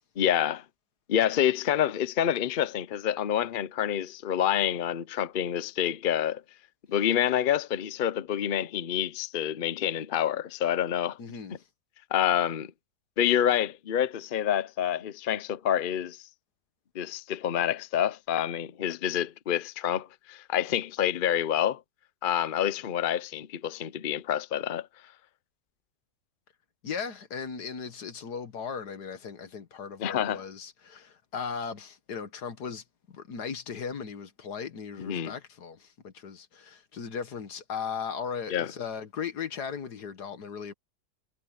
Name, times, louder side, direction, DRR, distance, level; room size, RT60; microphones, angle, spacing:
voice 1, 0.2-0.6 1.1-6.4 6.9-11.2 12.1-12.7 13.2-16.2 16.9-21.8 22.2-24.9 30.0-30.4 35.0-35.3 38.5-38.7, left 10 dB, 55° left, 0.6 m, -27 dB
voice 2, 11.2-11.6 26.8-40.7, left 6 dB, 75° left, 2.0 m, -37 dB
omnidirectional pair, 1.7 m